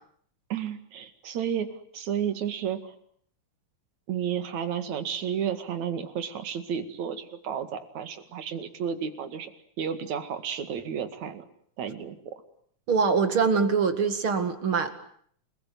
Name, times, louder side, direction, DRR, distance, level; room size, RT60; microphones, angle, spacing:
voice 1, 0.5-1.7 1.9-2.9 4.1-9.5 9.8-11.5 11.8-12.4, right 8 dB, 65° right, 10 dB, 3.4 m, -32 dB
voice 2, 12.9-14.9, right 5 dB, 45° right, 9 dB, 2.6 m, -23 dB
29.0 x 20.5 x 9.3 m, 0.64 s
omnidirectional pair, 3.5 m